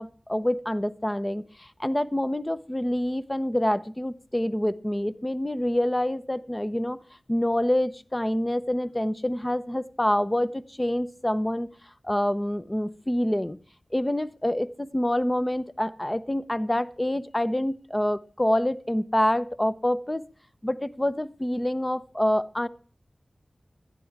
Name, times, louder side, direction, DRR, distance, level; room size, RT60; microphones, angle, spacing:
voice 1, 0.0-7.0 7.3-11.7 12.0-13.6 13.9-20.2 20.6-22.7, left 1 dB, 20° left, 13 dB, 0.7 m, -26 dB
12.0 x 10.0 x 4.7 m, 0.38 s
wide cardioid pair, 75°, 0 cm